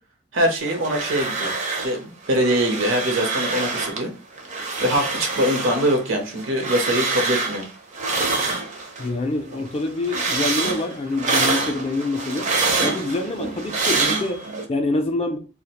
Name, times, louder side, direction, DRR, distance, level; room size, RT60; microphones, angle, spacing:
voice 1, 0.3-1.5 1.8-4.1 4.8-7.6, equal, 75° right, 0.6 m, -23 dB
sound 1, 0.6-2.0 2.2-4.0 4.4-9.1 9.5-14.6, right 3 dB, 35° right, 0.5 m, -26 dB
voice 2, 9.0-12.5 12.8-15.4, left 2 dB, 30° left, 0.3 m, -26 dB
2.3 x 2.1 x 2.8 m
head